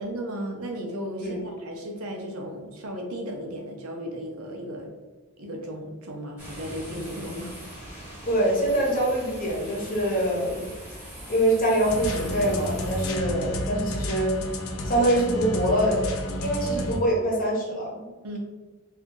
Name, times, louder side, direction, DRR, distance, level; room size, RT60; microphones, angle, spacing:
voice 1, 0.0-4.9 5.4-7.5 18.2-18.4, equal, 75° right, 1 dB, 0.7 m, -35 dB
sound 1, 6.4-13.1, right 1 dB, 10° right, 1.0 m, -42 dB
voice 2, 8.3-10.7 11.3-14.3 14.8-16.1 16.4-18.1, right 1 dB, 40° left, -3 dB, 0.8 m, -24 dB
sound 2, 11.8-17.0, left 1 dB, 65° left, 0.5 m, -31 dB
2.7 x 2.5 x 3.7 m, 1.3 s
head